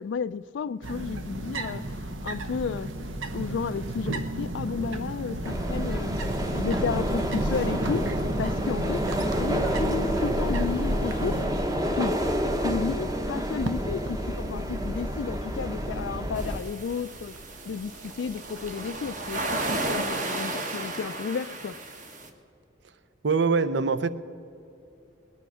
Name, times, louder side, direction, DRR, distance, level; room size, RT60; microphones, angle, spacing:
voice 1, 0.0-2.9 3.3-6.1 6.5-8.1 8.4-11.4 11.9-17.3 17.7-19.4 19.7-21.7, left 6 dB, 65° left, 15 dB, 0.3 m, -32 dB
sound 1, 0.8-20.2, right 2 dB, 80° right, 0.9 m, -35 dB
sound 2, 5.4-16.6, equal, 20° right, 0.8 m, -29 dB
sound 3, 16.4-22.3, right 2 dB, 40° right, 1.3 m, -33 dB
voice 2, 23.2-24.1, right 4 dB, 60° right, 14 dB, 0.6 m, -23 dB
20.5 x 9.9 x 6.2 m, 2.7 s
head